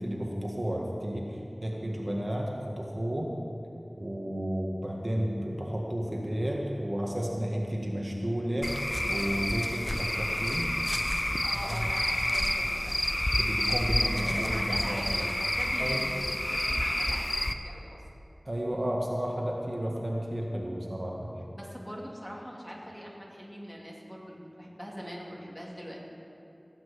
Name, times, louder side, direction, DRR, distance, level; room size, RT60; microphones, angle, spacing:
voice 1, 0.0-3.3 4.0-8.7 9.1-10.7 11.7-11.8 13.4-15.0 15.8-16.0 18.4-21.3, equal, 45° right, -2 dB, 1.7 m, -32 dB
Cricket / Frog, 8.6-17.5, left 1 dB, 25° left, 0.7 m, -29 dB
voice 2, 11.4-13.0 14.3-17.4 17.6-18.0 21.5-26.0, equal, 5° left, -3 dB, 2.6 m, -42 dB
17.5 x 6.0 x 8.4 m, 2.8 s
wide cardioid pair, 50°, 0 cm